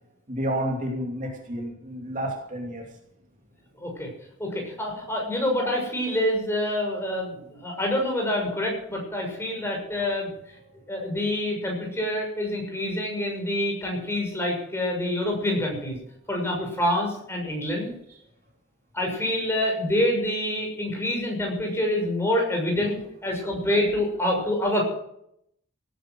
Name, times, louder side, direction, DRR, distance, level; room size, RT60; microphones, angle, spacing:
voice 1, 0.3-2.8, equal, 40° right, 0 dB, 3.0 m, -30 dB
voice 2, 3.8-4.1 4.4-10.3 10.9-16.0 16.3-17.9 18.9-23.0 23.2-24.8, left 1 dB, 15° left, 0 dB, 6.4 m, -26 dB
18.0 x 11.5 x 6.3 m, 0.74 s
head